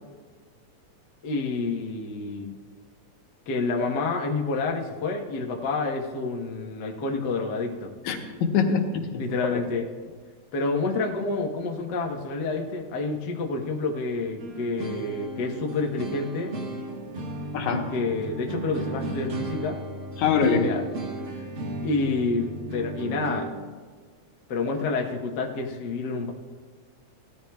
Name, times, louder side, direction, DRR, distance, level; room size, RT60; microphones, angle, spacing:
voice 1, 1.2-2.6 3.5-7.9 9.2-10.1 10.5-16.5 17.9-19.8 20.2-20.8 21.3-21.5 21.8-23.5 24.5-26.3, left 3 dB, 55° left, 1 dB, 1.2 m, -29 dB
voice 2, 8.1-9.3 17.5-17.9 20.2-20.7, left 5 dB, 80° left, 3 dB, 2.4 m, -24 dB
sound 1, 14.4-23.5, right 2 dB, 45° right, 1.2 m, -35 dB
18.5 x 13.5 x 2.3 m, 1.5 s
omnidirectional pair, 3.5 m